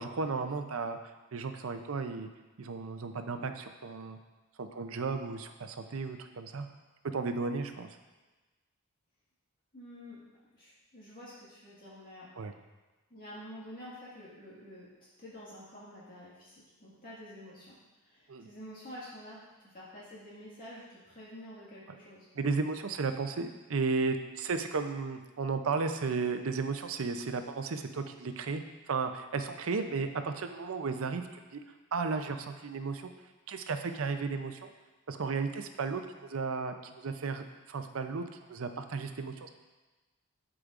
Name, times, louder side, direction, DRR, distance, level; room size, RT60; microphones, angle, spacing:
voice 1, 0.0-2.3 2.6-4.2 4.6-6.7 7.1-7.9 12.4-12.5 18.3-18.5 22.3-31.6 31.9-33.1 33.5-34.7 35.1-39.5, right 4 dB, 70° right, 7 dB, 0.6 m, -34 dB
voice 2, 9.7-10.2 10.5-12.3 13.1-14.9 15.2-17.8 18.0-19.4 19.6-22.3, equal, 45° left, -9 dB, 1.8 m, -48 dB
12.5 x 5.0 x 2.5 m, 1.2 s
head